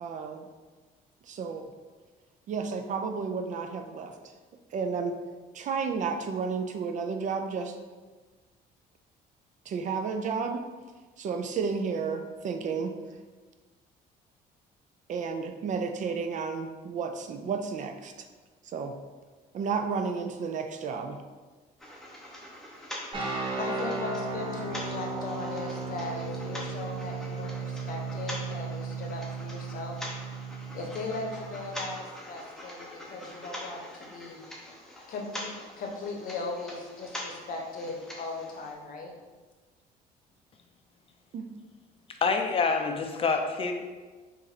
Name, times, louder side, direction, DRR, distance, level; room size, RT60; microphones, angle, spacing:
voice 1, 0.0-0.4 1.3-1.7 2.5-4.1 4.7-5.2 5.5-7.8 9.7-10.6 11.2-12.9 15.1-18.1 18.7-19.0 19.5-21.2 41.3-41.5, right 5 dB, 45° right, 6 dB, 0.4 m, -32 dB
sound 1, 21.8-38.7, left 1 dB, 5° left, 0.8 m, -44 dB
sound 2, 23.1-32.0, right 4 dB, 30° right, 0.9 m, -36 dB
voice 2, 23.6-29.9 30.7-34.4 35.1-35.5 35.8-39.1, left 3 dB, 55° left, 1 dB, 0.8 m, -38 dB
voice 3, 42.2-43.7, left 4 dB, 35° left, 4 dB, 0.5 m, -26 dB
4.1 x 2.6 x 4.0 m, 1.3 s
cardioid pair, 110°, 17 cm